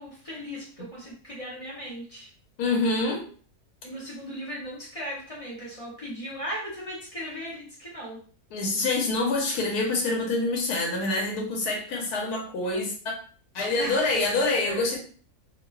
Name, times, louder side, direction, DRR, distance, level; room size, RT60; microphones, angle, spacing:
voice 1, 0.0-2.3 3.8-8.2 13.8-14.2 14.5-14.8, equal, 45° left, -6 dB, 0.4 m, -37 dB
voice 2, 2.6-3.2 8.5-12.9 13.5-15.0, left 2 dB, 90° left, 0 dB, 1.2 m, -26 dB
2.8 x 2.0 x 2.3 m, 0.44 s
omnidirectional pair, 1.6 m